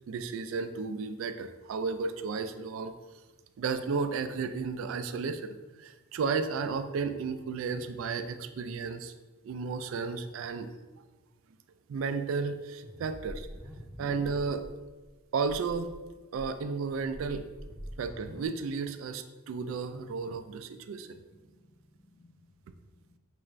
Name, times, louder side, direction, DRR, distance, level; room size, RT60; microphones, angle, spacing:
voice 1, 0.1-2.9 3.6-9.1 9.4-10.7 11.9-13.5 14.0-14.6 15.3-15.9 16.3-17.4 18.0-21.2, right 5 dB, 70° right, 9 dB, 0.3 m, -33 dB
sound 1, 12.8-14.7 15.0-15.1 15.4-15.9 16.3-18.5, equal, 10° left, 0.5 m, -45 dB
voice 2, 21.1-23.2, left 1 dB, 55° left, -6 dB, 0.6 m, -63 dB
5.5 x 2.4 x 3.1 m, 1.2 s
head